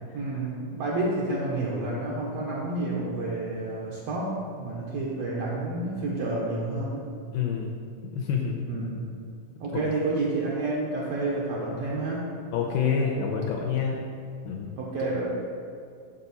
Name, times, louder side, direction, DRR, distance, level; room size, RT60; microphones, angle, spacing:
voice 1, 0.1-7.0 8.7-9.0 9.6-12.3 14.8-15.3, right 2 dB, 80° right, -5 dB, 1.5 m, -29 dB
voice 2, 7.3-7.7 8.0-8.6 9.7-9.8 12.5-14.0 14.5-14.7, left 6 dB, 85° left, -1 dB, 2.2 m, -27 dB
7.0 x 5.6 x 4.0 m, 2.3 s
omnidirectional pair, 4.0 m